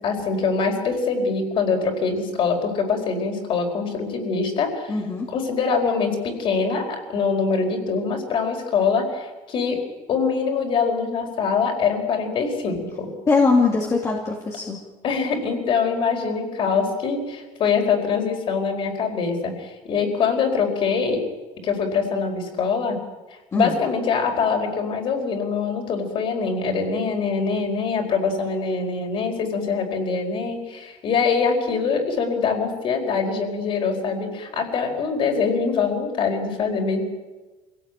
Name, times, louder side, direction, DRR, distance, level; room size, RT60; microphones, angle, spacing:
voice 1, 0.0-5.0 5.3-9.8 10.1-13.1 15.0-21.2 21.6-23.0 23.5-37.1, left 5 dB, 45° left, 4 dB, 4.7 m, -24 dB
voice 2, 4.9-5.3 13.3-14.8 23.5-23.7, left 3 dB, 20° left, -1 dB, 2.4 m, -21 dB
25.5 x 17.5 x 9.1 m, 1.2 s
cardioid pair, 170°, 13 cm